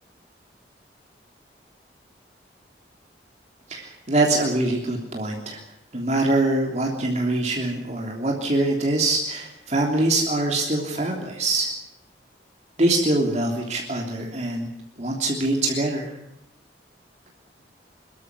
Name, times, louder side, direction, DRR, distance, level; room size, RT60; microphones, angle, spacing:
voice 1, 3.7-5.6 5.9-11.7 12.8-14.7 15.0-16.1, right 2 dB, 40° right, 1 dB, 3.2 m, -24 dB
24.0 x 13.5 x 9.9 m, 0.78 s
head